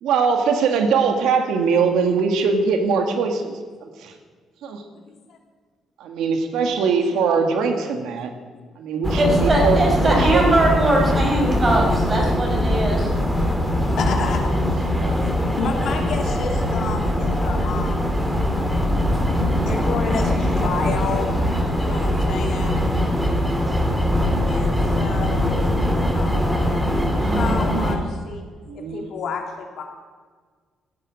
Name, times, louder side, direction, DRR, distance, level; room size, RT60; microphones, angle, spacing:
voice 1, 0.0-4.1 4.6-4.8 6.0-8.3 8.8-10.6 10.8-11.1 15.0-15.2 27.0-28.0 28.7-29.1, right 5 dB, 85° right, 6 dB, 1.9 m, -22 dB
voice 2, 4.9-5.4 7.8-8.0 13.4-18.2 19.6-21.3 21.8-22.9 24.4-26.8 27.2-28.4 28.7-29.8, left 5 dB, 70° left, 2 dB, 3.3 m, -31 dB
sound 1, 9.0-28.0, left 1 dB, 5° right, 2.9 m, -21 dB
voice 3, 9.1-13.1, right 1 dB, 30° right, 0 dB, 6.1 m, -20 dB
16.0 x 10.0 x 8.5 m, 1.5 s
cardioid pair, 90°, 0 cm